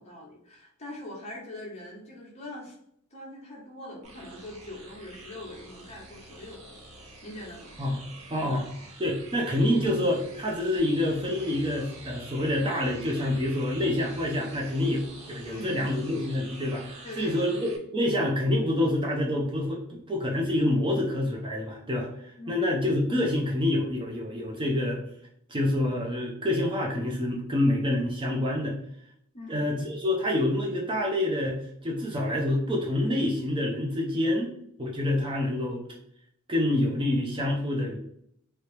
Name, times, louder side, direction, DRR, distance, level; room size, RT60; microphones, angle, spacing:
voice 1, 0.0-2.8 3.1-6.6 7.2-7.7 8.4-8.6 15.4-15.9 17.0-17.5 22.4-22.6 29.3-29.7, left 1 dB, 30° left, -2 dB, 1.0 m, -42 dB
sound 1, 4.0-17.8, right 2 dB, 85° right, 1.0 m, -47 dB
voice 2, 8.3-8.7 9.0-25.0 25.5-28.8 29.5-34.5 34.8-35.8 36.5-38.0, left 1 dB, 25° right, -1 dB, 0.5 m, -27 dB
2.9 x 2.9 x 3.2 m, 0.71 s
head